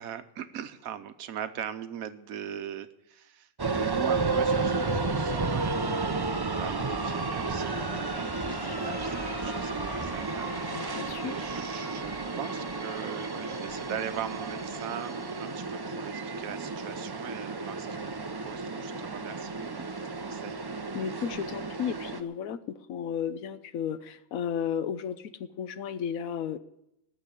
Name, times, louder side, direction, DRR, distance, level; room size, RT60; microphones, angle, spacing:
voice 1, 0.0-18.1 18.4-19.9 20.2-20.6, right 9 dB, 75° right, 11 dB, 1.2 m, -40 dB
sound 1, 3.6-22.2, right 3 dB, 35° right, 0.3 m, -32 dB
Crowd, 7.3-14.6, left 5 dB, 55° left, 1.4 m, -45 dB
voice 2, 10.7-11.3 20.9-26.6, left 8 dB, 75° left, 13 dB, 1.1 m, -33 dB
14.0 x 6.3 x 9.8 m, 0.85 s
omnidirectional pair, 1.5 m